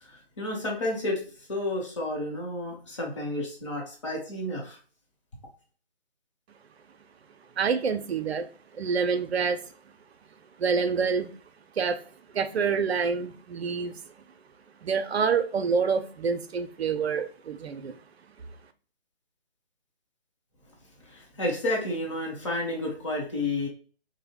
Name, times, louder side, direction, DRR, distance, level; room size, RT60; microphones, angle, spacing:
voice 1, 0.0-1.2 1.5-4.8 21.1-23.7, left 1 dB, 30° left, 0.7 m, -31 dB
voice 2, 7.6-8.5 8.7-9.6 10.6-11.3 11.8-12.0 12.3-14.0 14.8-18.0, right 5 dB, 85° right, 0.5 m, -27 dB
2.7 x 2.0 x 3.3 m
figure-of-eight pair, 155°, 31 cm